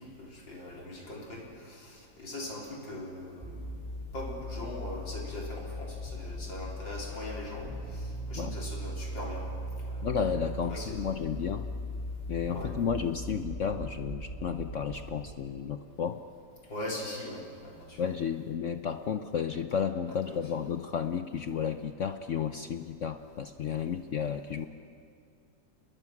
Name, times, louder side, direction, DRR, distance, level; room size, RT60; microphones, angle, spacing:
voice 1, 0.0-3.6 4.1-9.5 9.9-10.1 10.7-11.0 12.5-12.8 16.7-18.0 20.3-20.4, left 1 dB, 80° left, -2 dB, 4.7 m, -41 dB
sound 1, 3.4-15.1, equal, ahead, 4.3 m, -39 dB
voice 2, 10.0-11.7 12.3-16.2 18.0-24.7, left 7 dB, 65° left, 8 dB, 0.7 m, -32 dB
29.5 x 21.0 x 6.0 m, 2.3 s
omnidirectional pair, 2.0 m